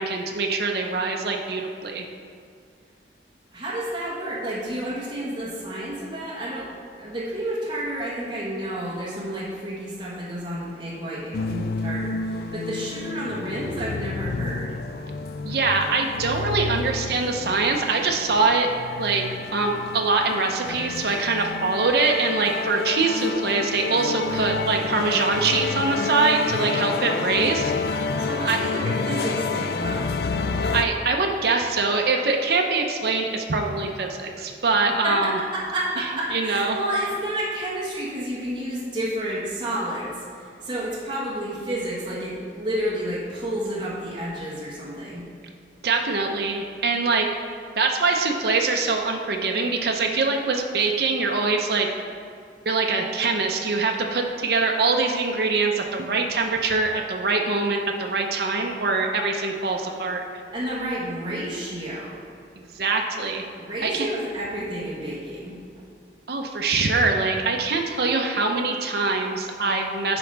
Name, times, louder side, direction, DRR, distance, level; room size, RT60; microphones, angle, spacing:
voice 1, 0.0-2.0 15.4-18.7 19.0-19.2 19.5-27.7 28.5-28.7 30.7-35.4 36.3-36.8 45.8-47.3 47.8-51.9 52.7-60.2 62.7-63.5 63.8-64.1 66.3-70.2, right 3 dB, 60° right, 2 dB, 0.6 m, -23 dB
voice 2, 3.5-6.7 7.0-14.7 28.2-30.1 35.0-45.2 60.5-62.2 63.6-65.6, right 1 dB, 25° right, -8 dB, 1.4 m, -30 dB
sound 1, 11.3-30.8, left 4 dB, 55° left, 0.3 m, -29 dB
9.7 x 5.3 x 3.4 m, 2.4 s
head